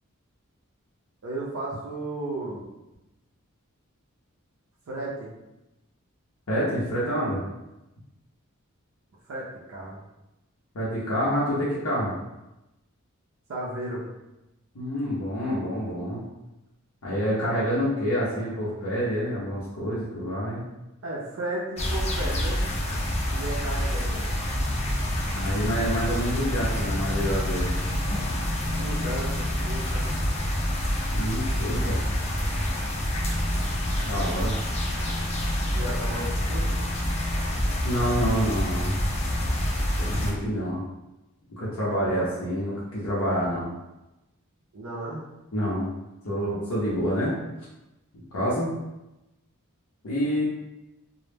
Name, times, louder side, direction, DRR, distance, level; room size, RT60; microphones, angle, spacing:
voice 1, 1.2-2.7 4.9-5.3 9.3-10.0 13.5-14.0 21.0-22.6 23.3-24.3 28.7-30.1 35.7-36.8 42.1-42.3 44.7-45.2, right 1 dB, 65° right, -6 dB, 0.5 m, -34 dB
voice 2, 6.5-7.4 10.7-12.1 14.7-16.2 17.0-20.7 25.3-27.8 31.1-32.0 34.0-34.5 37.5-38.9 40.0-40.8 41.6-43.7 45.5-45.9 46.2-47.3 48.1-48.7 50.0-50.5, equal, 80° left, -7 dB, 0.6 m, -27 dB
sound 1, 21.8-40.3, equal, 30° left, 0.4 m, -27 dB
2.0 x 2.0 x 3.2 m, 0.98 s
head